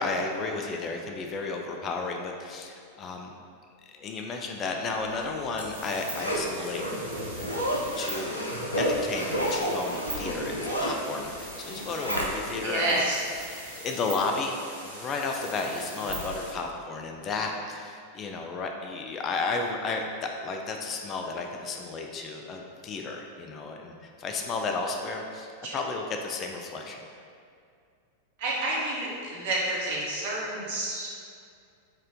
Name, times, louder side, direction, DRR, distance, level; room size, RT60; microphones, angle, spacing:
voice 1, 0.0-3.3 3.8-6.9 8.0-8.4 8.8-13.1 13.4-14.6 14.8-27.0, left 3 dB, 30° left, 2 dB, 0.3 m, -33 dB
Zipper (clothing), 5.1-12.7 13.1-13.2, equal, 80° left, 0.5 m, -31 dB
sound 1, 5.7-16.5, right 1 dB, 80° right, 1.1 m, -42 dB
voice 2, 12.6-13.1 16.1-16.2 25.6-25.8 28.4-31.1, right 1 dB, 55° right, -6 dB, 1.1 m, -29 dB
4.3 x 2.5 x 3.4 m, 2.3 s
figure-of-eight pair, 90°, 0 cm